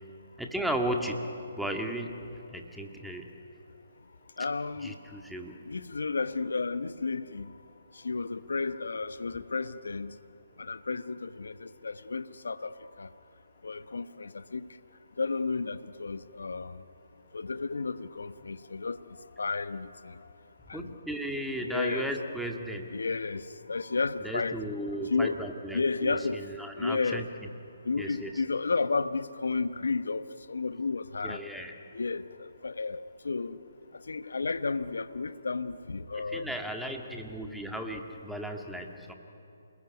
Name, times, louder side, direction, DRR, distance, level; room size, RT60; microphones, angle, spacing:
voice 1, 0.4-2.2 2.5-3.3 4.8-5.6 20.7-23.0 24.2-27.3 28.0-28.4 31.2-31.8 36.1-39.1, right 1 dB, ahead, 2.1 m, -35 dB
voice 2, 4.4-5.0 5.7-7.5 7.9-10.2 10.6-13.1 13.6-14.7 15.2-16.8 17.3-20.3 20.7-20.9 21.7-22.1 22.9-24.6 25.0-25.4 25.7-26.5 26.8-27.3 27.8-31.4 31.9-33.6 33.9-36.5, left 4 dB, 75° left, 1.1 m, -32 dB
28.0 x 21.0 x 9.8 m
figure-of-eight pair, 140°, 0 cm